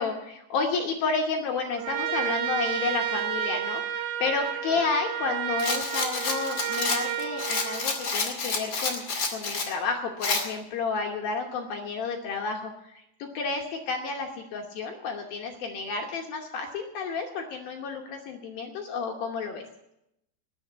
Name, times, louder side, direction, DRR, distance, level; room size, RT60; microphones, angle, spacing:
voice 1, 0.0-19.6, left 4 dB, 75° left, 1 dB, 2.2 m, -31 dB
Trumpet, 1.7-8.3, right 11 dB, 80° right, 3.5 m, -31 dB
Rattle, 5.6-9.7 10.2-10.4, left 4 dB, 40° left, 1.9 m, -29 dB
19.5 x 6.9 x 8.1 m, 0.85 s
omnidirectional pair, 5.6 m